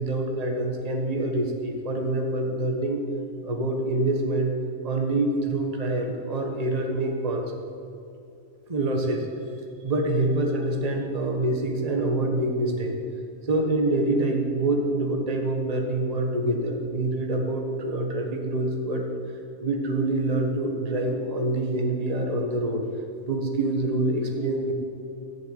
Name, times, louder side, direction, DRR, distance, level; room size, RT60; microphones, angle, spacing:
voice 1, 0.0-3.0 3.4-4.5 4.8-7.4 8.7-9.3 9.8-12.9 13.5-19.0 19.6-22.8 23.3-24.7, right 2 dB, 30° right, 2 dB, 1.5 m, -26 dB
14.5 x 7.6 x 9.5 m, 2.5 s
omnidirectional pair, 1.5 m